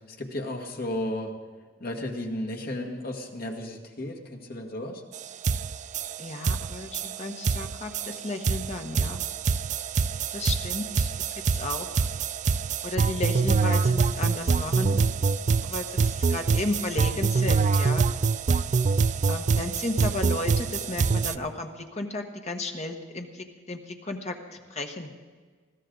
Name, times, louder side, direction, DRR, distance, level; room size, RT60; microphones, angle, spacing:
voice 1, 0.1-1.3 1.8-5.0, left 1 dB, 50° left, 2 dB, 1.9 m, -34 dB
sound 1, 5.1-5.2 5.4-21.4, right 5 dB, 40° right, 0.4 m, -25 dB
voice 2, 6.2-9.3 10.3-12.1 12.8-15.0 15.6-18.1 19.3-24.4 24.7-25.1, left 2 dB, 35° left, 4 dB, 1.4 m, -33 dB
21.0 x 15.0 x 4.0 m, 1.5 s
head